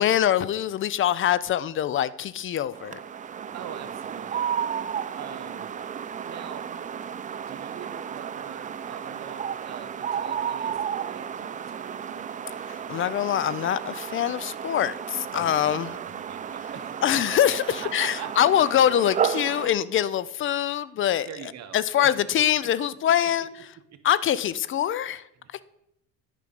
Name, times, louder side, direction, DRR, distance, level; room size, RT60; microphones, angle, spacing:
voice 1, 0.0-3.0 12.7-16.0 17.0-21.3 21.7-23.5 24.0-25.2 25.5-25.6, left 10 dB, 40° left, 0.4 m, -24 dB
sound 1, 2.7-19.7, right 8 dB, 25° right, 0.4 m, -33 dB
voice 2, 3.5-4.6 5.2-5.7 6.2-6.7 7.1-7.2 7.5-12.3 15.3-17.2 17.7-18.6 20.5-20.6 21.3-22.2 22.6-23.0 23.9-24.0 25.3-25.6, right 9 dB, 55° right, 1.1 m, -43 dB
9.6 x 5.3 x 5.2 m
cardioid pair, 100°, 32 cm